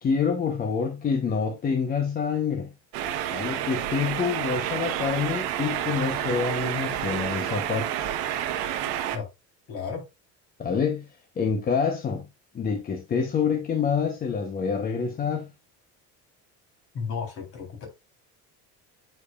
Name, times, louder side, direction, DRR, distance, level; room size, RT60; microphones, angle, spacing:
voice 1, 0.0-2.7 3.3-8.1 10.6-11.0 11.4-12.3 12.5-15.5, left 6 dB, 30° left, 1.0 m, -27 dB
sound 1, 2.9-9.2, right 11 dB, 90° right, 1.2 m, -29 dB
voice 2, 9.7-10.0 16.9-17.9, left 6 dB, 45° left, 3.8 m, -33 dB
9.1 x 5.1 x 2.4 m
cardioid pair, 150°, 32 cm